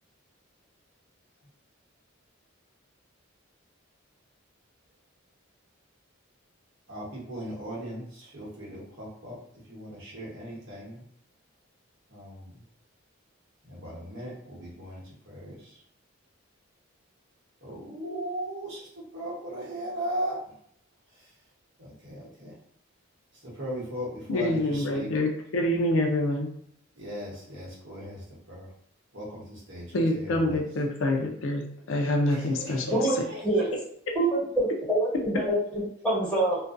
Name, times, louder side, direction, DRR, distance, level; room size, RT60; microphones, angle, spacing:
voice 1, 6.9-11.0 12.1-12.6 13.6-15.8 17.6-20.4 21.8-22.5 23.4-25.1 27.0-28.7 29.1-29.9 30.1-30.6 32.3-33.7, equal, 60° right, -6 dB, 1.0 m, -38 dB
voice 2, 24.3-26.5 29.9-32.9, left 1 dB, 70° left, 1 dB, 0.4 m, -26 dB
voice 3, 32.9-33.6 34.1-35.6 36.0-36.6, right 2 dB, 5° left, -11 dB, 1.4 m, -25 dB
2.4 x 2.2 x 2.4 m, 0.66 s
head